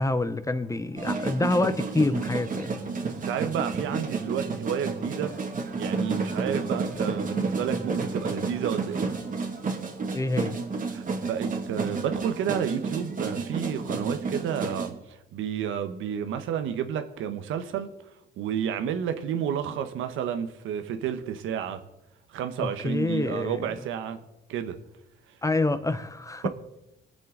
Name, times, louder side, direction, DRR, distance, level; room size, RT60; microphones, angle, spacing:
voice 1, 0.0-2.7 10.1-10.5 22.6-23.6 25.4-26.5, left 2 dB, 15° left, 0.8 m, -27 dB
sound 1, 1.0-14.9, right 4 dB, 40° right, 2.2 m, -31 dB
voice 2, 3.2-5.3 5.8-9.1 10.9-17.9 18.4-21.8 22.3-24.2 24.5-24.8 26.4-26.5, right 8 dB, 85° right, 1.1 m, -31 dB
21.5 x 7.7 x 3.9 m
cardioid pair, 90°, 20 cm